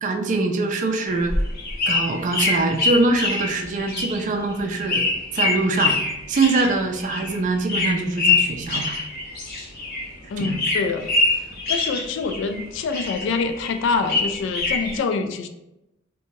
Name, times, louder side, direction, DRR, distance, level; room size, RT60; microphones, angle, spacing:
voice 1, 0.0-1.3 1.9-5.0 5.3-6.0 6.3-8.9 10.4-10.6, right 3 dB, 40° right, 5 dB, 0.3 m, -23 dB
sound 1, 1.1-10.1 10.4-12.6 12.9-15.0, left 3 dB, 50° left, 0.8 m, -24 dB
voice 2, 10.3-11.4 11.7-15.5, left 4 dB, 70° left, 8 dB, 0.3 m, -26 dB
2.7 x 2.2 x 2.9 m, 0.90 s
head